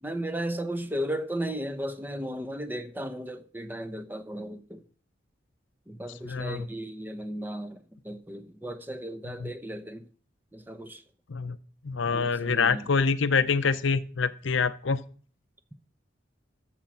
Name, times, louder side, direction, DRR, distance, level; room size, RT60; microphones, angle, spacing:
voice 1, 0.0-4.8 5.9-10.0 10.5-11.0 12.1-12.8, right 1 dB, 10° right, 0.7 m, -35 dB
voice 2, 6.2-6.7 9.3-9.5 11.3-11.6 11.8-15.0, left 5 dB, 80° left, 0.6 m, -26 dB
13.5 x 4.9 x 7.2 m
head